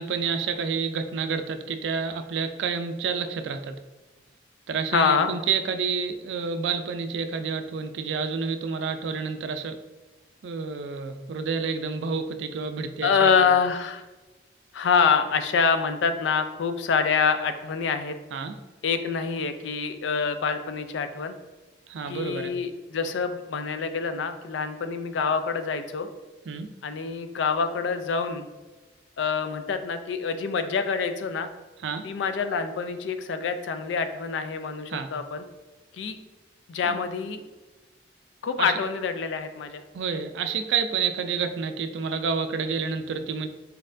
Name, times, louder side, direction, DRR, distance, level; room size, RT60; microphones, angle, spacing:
voice 1, 0.0-3.7 4.7-9.8 10.4-13.3 18.3-18.5 21.9-22.5 26.5-26.7 31.8-32.0 34.9-35.1 36.8-37.0 38.6-38.7 39.9-43.5, right 5 dB, 70° right, 8 dB, 0.4 m, -29 dB
voice 2, 4.9-5.3 13.0-14.0 14.7-18.1 18.8-21.3 22.1-26.1 26.8-28.5 29.2-31.5 32.0-35.4 35.9-36.2 36.7-37.4 38.4-39.8, left 5 dB, 75° left, 9 dB, 0.4 m, -26 dB
4.2 x 4.1 x 2.6 m, 1.2 s
head